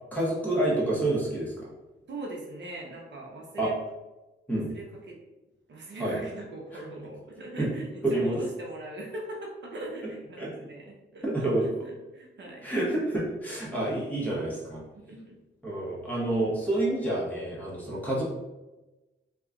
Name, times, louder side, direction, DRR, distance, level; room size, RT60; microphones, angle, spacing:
voice 1, 0.1-1.7 3.6-3.7 4.5-4.7 6.0-6.2 7.6-7.7 8.0-8.4 10.4-10.5 11.2-11.6 12.6-14.8 15.6-18.2, right 1 dB, 10° left, -6 dB, 1.1 m, -28 dB
voice 2, 2.1-3.7 4.7-5.2 5.7-12.7 15.1-15.4, right 1 dB, 65° right, -1 dB, 0.7 m, -41 dB
2.8 x 2.3 x 3.7 m, 1.1 s
wide cardioid pair, 145°, 20 cm